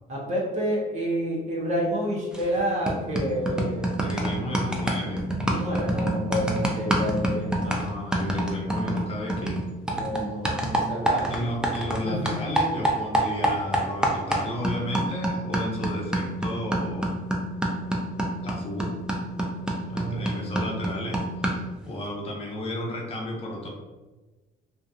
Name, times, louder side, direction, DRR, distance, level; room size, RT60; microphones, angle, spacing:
voice 1, 0.1-4.0 5.5-8.0 9.9-11.4 12.0-12.3 19.9-20.4, equal, 45° right, -3 dB, 0.7 m, -29 dB
sound 1, 2.3-2.6 2.9-12.0 12.3-21.7, right 1 dB, 5° right, 0.4 m, -27 dB
voice 2, 4.0-5.2 7.5-9.6 11.2-17.1 18.4-18.9 19.9-23.7, left 1 dB, 35° left, -2 dB, 0.8 m, -33 dB
2.7 x 2.4 x 2.3 m, 1.2 s
cardioid pair, 110°, 17 cm